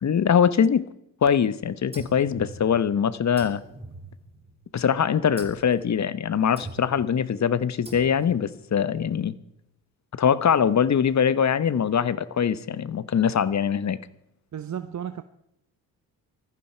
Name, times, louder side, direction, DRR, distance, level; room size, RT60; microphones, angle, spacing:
voice 1, 0.0-0.9 1.2-3.6 4.7-9.3 10.1-14.0, left 7 dB, 40° left, 1.2 m, -22 dB
sound 1, 1.9-3.0 3.4-4.7 5.4-5.8 6.6-7.1 7.9-8.5, right 2 dB, 15° right, 3.3 m, -42 dB
voice 2, 14.5-15.2, right 9 dB, 40° right, 1.0 m, -33 dB
20.0 x 14.5 x 4.6 m
hypercardioid pair, 55°, 43 cm